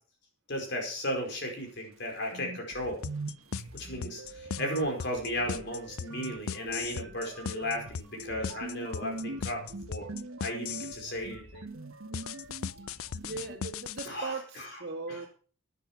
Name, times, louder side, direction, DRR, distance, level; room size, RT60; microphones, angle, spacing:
voice 1, 0.5-3.0 3.7-9.6 9.9-10.1 10.4-11.6 14.1-14.7 15.1-15.2, equal, 55° left, 2 dB, 4.6 m, -35 dB
sound 1, 2.0-2.1 2.3-13.6, right 2 dB, 80° right, 1.3 m, -43 dB
sound 2, 3.0-11.0 12.1-14.1, left 7 dB, 80° left, 0.5 m, -37 dB
voice 2, 13.2-15.3, right 4 dB, 50° right, 0 dB, 2.1 m, -38 dB
12.0 x 10.0 x 5.0 m, 0.41 s
head